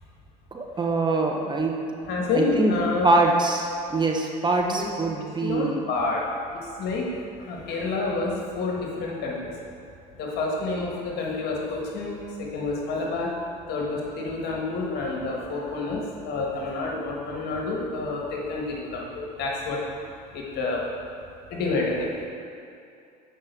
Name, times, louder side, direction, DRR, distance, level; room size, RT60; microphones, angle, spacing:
voice 1, 0.5-2.7 3.0-5.8, right 2 dB, 20° right, 1 dB, 0.9 m, -24 dB
voice 2, 2.1-3.2 4.7-5.0 5.4-6.2 6.8-7.1 7.4-9.5 10.1-13.3 13.7-19.8 20.3-20.9 21.5-22.3, left 3 dB, 55° left, -2 dB, 1.8 m, -28 dB
7.4 x 5.2 x 4.6 m, 2.5 s
hypercardioid pair, 80°, 20 cm